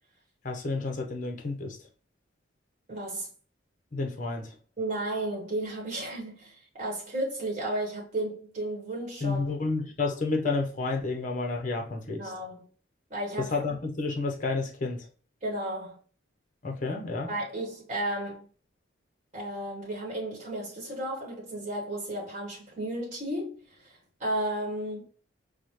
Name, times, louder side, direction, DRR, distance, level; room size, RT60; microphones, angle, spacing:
voice 1, 0.4-1.8 3.9-4.6 9.2-12.2 13.4-15.0 16.6-17.3, left 3 dB, 40° left, 0.6 m, -30 dB
voice 2, 2.9-3.3 4.8-9.5 12.1-12.7 13.1-13.5 15.4-16.0 17.3-18.5 19.3-25.1, right 1 dB, 35° right, 1.1 m, -33 dB
4.7 x 2.1 x 2.9 m
head